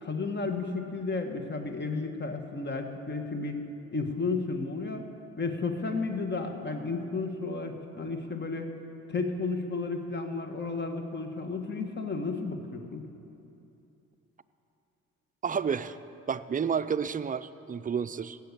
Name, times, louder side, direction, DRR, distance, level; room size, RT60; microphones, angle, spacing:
voice 1, 0.0-3.6 3.9-5.1 5.4-8.7 9.1-13.0, left 3 dB, 35° left, 5 dB, 1.6 m, -33 dB
voice 2, 15.4-16.0 16.3-18.4, right 6 dB, 25° right, 13 dB, 0.5 m, -30 dB
16.0 x 6.7 x 8.3 m, 2.8 s
supercardioid pair, 60°, 32 cm